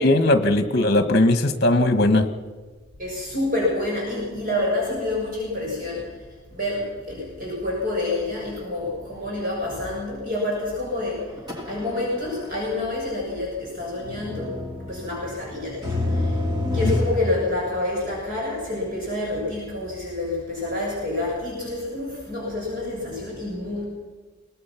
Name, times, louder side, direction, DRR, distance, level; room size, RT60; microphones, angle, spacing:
voice 1, 0.0-2.3 16.8-16.9, left 1 dB, 50° left, 9 dB, 1.5 m, -19 dB
voice 2, 3.0-6.0 6.5-11.2 11.7-14.5 14.9-15.9 16.7-23.8, left 2 dB, 40° right, -4 dB, 6.7 m, -28 dB
sound 1, 11.2-12.2 12.4-12.5 14.0-17.2, left 2 dB, 20° right, 2.7 m, -27 dB
22.5 x 20.0 x 5.9 m, 1.4 s
head